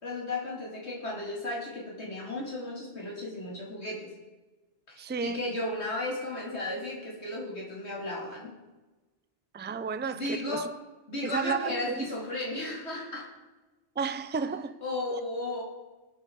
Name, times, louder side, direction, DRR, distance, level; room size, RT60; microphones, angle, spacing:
voice 1, 0.0-4.1 4.9-8.5 10.1-10.7 11.1-13.3 14.8-15.6, left 2 dB, 65° left, 3.6 m, -34 dB
voice 2, 5.0-5.4 9.5-10.6 11.2-12.0 14.0-14.7, right 5 dB, 15° right, 0.4 m, -32 dB
21.0 x 8.4 x 4.8 m
omnidirectional pair, 1.2 m